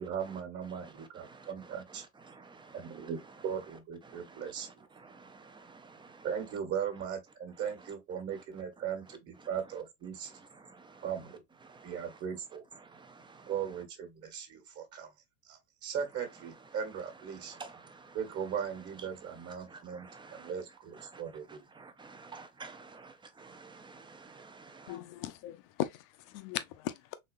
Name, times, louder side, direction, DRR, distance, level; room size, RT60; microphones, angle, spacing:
voice 1, 0.0-2.0 2.7-4.8 6.2-10.3 11.0-11.4 11.8-12.6 13.5-15.1 15.5-17.5 18.1-20.1 20.3-21.6, right 7 dB, 35° right, 1.4 m, -38 dB
voice 2, 0.8-1.5 2.3-3.1 4.1-6.3 10.6-11.0 11.6-12.0 12.8-13.5 17.3-18.2 19.7-20.5 21.0-21.2 21.7-25.0, right 4 dB, 10° right, 0.5 m, -52 dB
voice 3, 24.9-26.0 26.3-27.1, left 13 dB, 50° left, 0.7 m, -37 dB
4.0 x 2.8 x 2.5 m
supercardioid pair, 110°, 40 cm